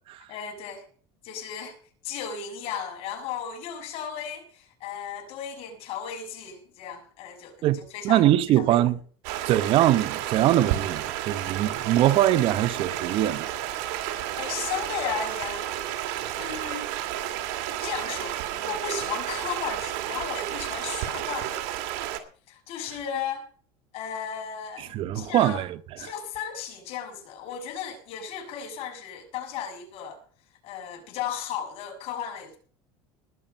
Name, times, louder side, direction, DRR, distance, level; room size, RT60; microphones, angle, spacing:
voice 1, 0.3-0.8 1.2-1.8 2.0-8.3 8.6-8.9 14.1-15.7 16.4-16.9 17.8-21.8 22.5-23.4 23.9-25.6 26.0-30.2 30.6-32.6, left 7 dB, 60° left, 6.3 m, -35 dB
voice 2, 7.6-9.0 9.5-13.5 24.8-25.8, right 13 dB, 50° right, 0.9 m, -22 dB
Stream, 9.2-22.2, right 12 dB, 80° right, 2.3 m, -31 dB
20.5 x 7.2 x 5.4 m
supercardioid pair, 125°, 11 cm